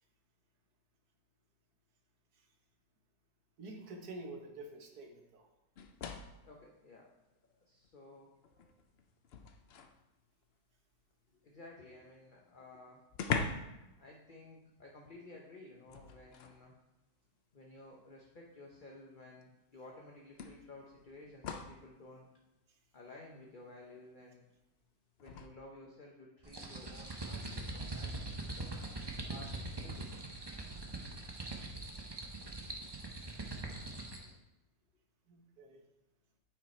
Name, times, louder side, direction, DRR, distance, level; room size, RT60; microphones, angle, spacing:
voice 1, 3.6-5.5 35.3-35.8, right 2 dB, 60° right, 3 dB, 1.6 m, -48 dB
sound 1, 5.8-6.5 7.8-7.9 8.4-10.0 12.1-12.2 12.4-12.5 13.1-13.8 14.1-14.4 15.9-16.6 17.8-17.9 19.4-19.5 20.4-21.9 25.2-25.5, left 5 dB, 70° left, 0.5 m, -41 dB
voice 2, 6.4-7.1 7.6-8.3 11.3-13.0 14.0-16.8 17.5-22.3 22.9-24.4 25.2-28.7 29.2-30.3, left 2 dB, 40° left, -1 dB, 0.8 m, -54 dB
sound 2, 26.4-34.3, right 2 dB, 25° right, 0.6 m, -42 dB
8.9 x 5.2 x 4.3 m, 0.99 s
omnidirectional pair, 1.8 m